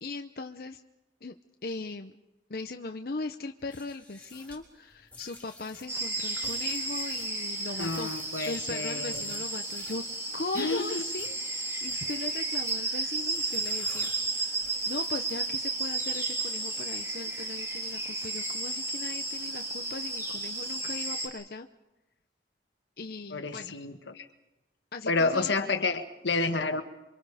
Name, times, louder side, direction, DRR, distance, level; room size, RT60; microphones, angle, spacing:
voice 1, 0.0-0.8 1.2-1.4 1.6-2.1 2.5-8.1 8.5-10.0 10.3-14.1 14.4-21.7 23.0-23.8 24.9-25.5, left 3 dB, 55° left, 6 dB, 0.8 m, -39 dB
sound 1, 3.6-10.1 10.5-11.4 11.8-12.8 13.3-15.7, left 2 dB, 10° left, 4.0 m, -51 dB
sound 2, 5.9-21.3, right 2 dB, 15° right, 3.1 m, -33 dB
voice 2, 7.8-9.3 10.5-11.0 23.3-24.3 25.1-26.8, left 3 dB, 85° left, 8 dB, 1.6 m, -30 dB
28.0 x 25.0 x 5.0 m, 1.0 s
head